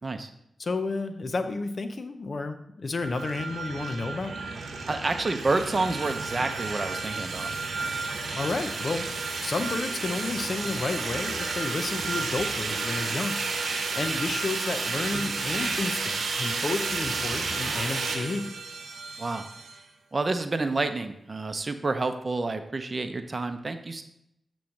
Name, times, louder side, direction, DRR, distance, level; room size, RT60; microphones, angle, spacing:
voice 1, 0.6-4.3 8.3-18.6, left 3 dB, 55° left, 9 dB, 0.6 m, -31 dB
sound 1, 3.0-19.8, right 4 dB, 75° right, 0.9 m, -31 dB
voice 2, 4.9-7.5 19.2-19.5 20.1-24.0, right 3 dB, 40° right, 8 dB, 0.6 m, -29 dB
8.5 x 3.1 x 6.3 m, 0.78 s
cardioid pair, 55°, 0 cm